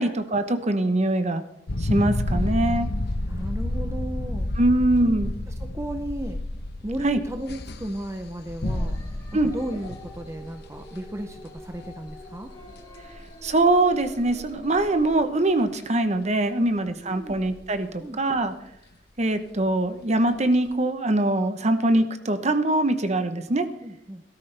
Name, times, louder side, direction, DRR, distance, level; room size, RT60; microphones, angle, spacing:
voice 1, 0.0-1.4 1.8-2.9 4.6-5.3 7.0-7.2 9.3-9.5 13.4-18.5 19.2-23.7, right 2 dB, 40° right, 10 dB, 0.9 m, -23 dB
sound 1, 1.7-12.2 12.7-13.1 13.6-13.8 14.2-14.3 14.6-15.2 15.7-15.8 17.3-17.5, left 1 dB, 60° left, 1.1 m, -30 dB
voice 2, 3.3-4.5 5.5-6.4 6.8-9.0 9.4-12.5 16.6-16.7 17.0-17.4 18.0-18.5 23.8-24.2, right 1 dB, 15° right, 6 dB, 0.6 m, -34 dB
sound 2, 8.6-15.1, equal, 25° left, 3.0 m, -45 dB
18.0 x 12.5 x 3.4 m, 0.81 s
head